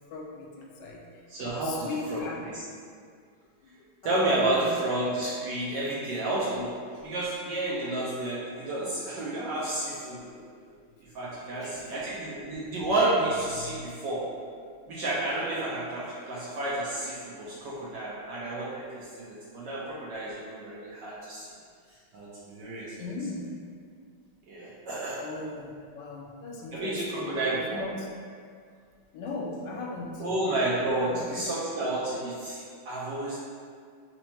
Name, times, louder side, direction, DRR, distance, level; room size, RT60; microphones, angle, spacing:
voice 1, 0.1-1.2 1.6-2.4 3.6-3.7 4.0-4.7 9.7-10.8 11.3-11.9 13.6-13.9 23.0-23.5 25.2-28.1 29.1-30.2 31.0-31.5, left 3 dB, 70° left, -2 dB, 1.2 m, -39 dB
voice 2, 1.3-2.5 4.0-6.7 7.0-10.3 11.0-14.2 14.9-21.5 22.1-22.9 24.5-25.2 26.7-27.8 30.2-33.4, right 2 dB, 65° right, -8 dB, 1.2 m, -31 dB
4.4 x 2.8 x 4.2 m, 2.1 s
omnidirectional pair, 2.4 m